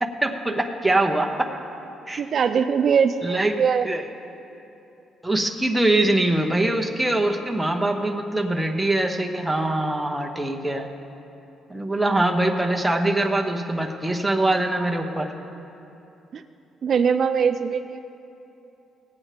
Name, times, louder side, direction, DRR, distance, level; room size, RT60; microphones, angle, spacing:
voice 1, 0.0-1.5 2.1-2.2 3.2-4.0 5.2-10.9 11.7-15.3, right 1 dB, 5° right, 2 dB, 0.9 m, -23 dB
voice 2, 2.2-3.9 16.3-16.4 16.8-18.0, right 6 dB, 55° right, 9 dB, 0.3 m, -21 dB
16.5 x 8.8 x 3.3 m, 2.8 s
cardioid pair, 90°, 0 cm